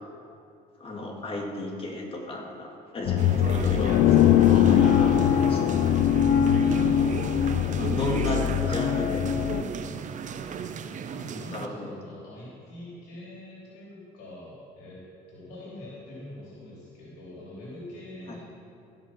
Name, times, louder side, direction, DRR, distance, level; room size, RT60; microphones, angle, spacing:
voice 1, 0.8-5.8 7.8-8.4 8.7-9.6 11.5-11.9 18.3-18.4, left 2 dB, 35° left, 0 dB, 2.2 m, -34 dB
sound 1, 3.1-9.6, left 10 dB, 70° left, 0.5 m, -22 dB
sound 2, 3.2-11.7, right 7 dB, 45° right, 0.7 m, -35 dB
voice 2, 6.6-8.0 8.6-8.9 11.0-15.0 15.3-18.4, left 1 dB, 85° left, -7 dB, 3.3 m, -43 dB
16.0 x 6.0 x 6.0 m, 2.5 s
cardioid pair, 110°, 17 cm